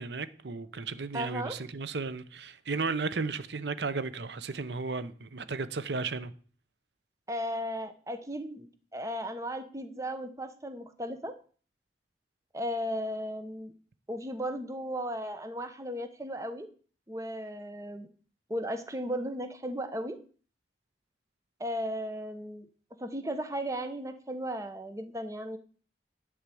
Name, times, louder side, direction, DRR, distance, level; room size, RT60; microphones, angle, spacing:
voice 1, 0.0-6.3, right 4 dB, 75° right, 0.8 m, -34 dB
voice 2, 1.1-1.6 7.3-8.7 8.9-11.3 12.5-13.7 14.1-16.7 17.1-18.1 18.5-20.2 21.6-22.7 23.0-25.6, equal, 15° right, 0.9 m, -35 dB
10.0 x 4.8 x 7.7 m
head